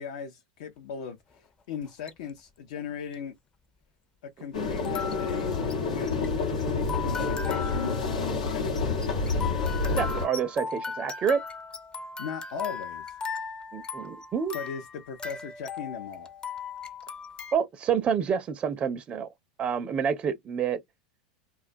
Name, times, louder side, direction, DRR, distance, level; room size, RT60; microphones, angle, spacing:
voice 1, 0.0-3.3 4.2-6.1 7.0-9.0 12.2-13.2 14.5-16.3, left 7 dB, 70° left, 0.5 m, -38 dB
sound 1, 1.8-2.3 3.1-3.2 4.8-17.5, left 5 dB, 25° left, 0.5 m, -38 dB
sound 2, 4.5-10.3, left 4 dB, 90° left, 1.0 m, -28 dB
voice 2, 10.0-11.4 13.7-14.6 17.5-19.3 19.6-20.8, right 7 dB, 30° right, 0.4 m, -28 dB
2.2 x 2.2 x 2.5 m
hypercardioid pair, 100°, 4 cm